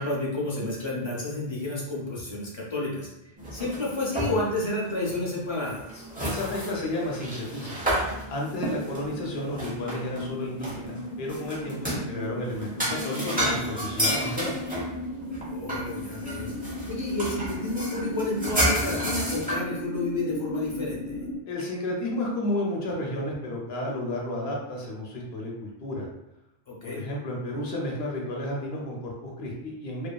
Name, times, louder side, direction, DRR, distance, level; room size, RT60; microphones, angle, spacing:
voice 1, 0.0-3.1 3.5-6.1 15.5-16.5 16.9-21.2 26.7-27.1, left 2 dB, 30° left, -5 dB, 0.7 m, -30 dB
sound 1, 3.4-4.6 4.9-5.1 5.7-10.3 10.6-12.1 12.5-19.6, equal, 10° right, 0.6 m, -30 dB
sound 2, 5.3-5.4 5.6-21.4, left 1 dB, 55° right, 0.9 m, -37 dB
voice 2, 6.2-7.8 8.3-14.5 21.5-26.1 26.8-30.1, left 1 dB, 80° left, -2 dB, 1.0 m, -32 dB
2.6 x 2.5 x 2.3 m, 0.90 s
omnidirectional pair, 1.0 m